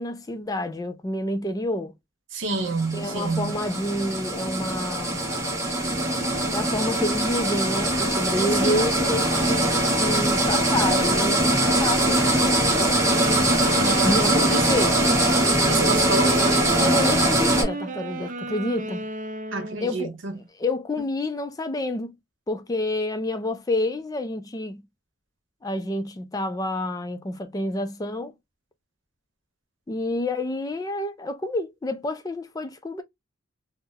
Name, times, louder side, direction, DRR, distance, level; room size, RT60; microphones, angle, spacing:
voice 1, 0.0-1.9 2.9-5.2 6.5-9.7 10.0-13.0 14.0-15.1 16.8-19.0 19.8-20.1 20.6-22.1 22.5-24.8 25.6-28.3 29.9-33.0, left 1 dB, 20° left, 0.3 m, -28 dB
voice 2, 2.3-3.6 8.4-8.9 13.7-14.6 15.6-16.4 19.5-20.4, right 3 dB, 70° right, 0.9 m, -29 dB
sound 1, 2.5-17.6, right 1 dB, 15° right, 1.1 m, -22 dB
sound 2, 13.0-20.0, right 2 dB, 40° right, 0.5 m, -32 dB
3.5 x 2.0 x 2.6 m
head